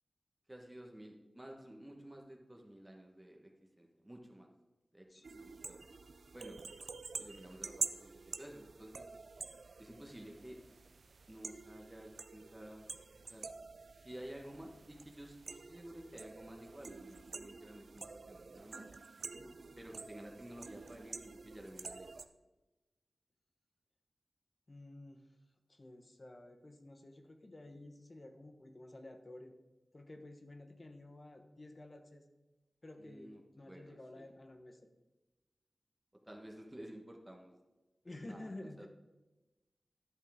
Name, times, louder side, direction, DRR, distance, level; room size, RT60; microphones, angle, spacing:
voice 1, 0.5-4.5 4.9-5.8 6.3-6.6 7.2-9.1 9.8-10.6 11.3-12.8 13.2-13.5 14.0-18.9 19.8-22.2 33.0-34.3 36.2-37.6 38.2-38.5 38.8-38.9, right 1 dB, 15° right, 1 dB, 1.1 m, -52 dB
voice 2, 5.1-5.4 19.3-19.6 24.7-25.2 25.7-29.5 29.9-32.3 32.8-34.9 38.0-38.9, left 1 dB, 40° left, 5 dB, 0.9 m, -52 dB
sound 1, 5.2-22.2, right 4 dB, 75° right, 0.4 m, -48 dB
11.0 x 5.5 x 3.5 m, 1.1 s
wide cardioid pair, 80°, 0 cm